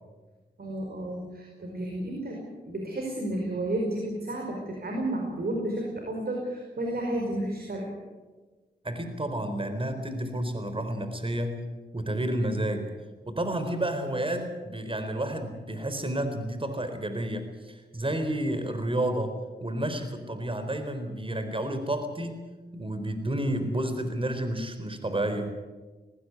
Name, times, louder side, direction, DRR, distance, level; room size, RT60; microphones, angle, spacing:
voice 1, 0.6-7.9, right 1 dB, 65° right, 1 dB, 5.2 m, -32 dB
voice 2, 8.8-11.7 11.9-12.9 13.2-19.3 19.6-22.4 22.7-25.5, right 1 dB, 30° right, 8 dB, 4.2 m, -30 dB
19.0 x 17.5 x 9.6 m, 1.3 s
cardioid pair, 45°, 17 cm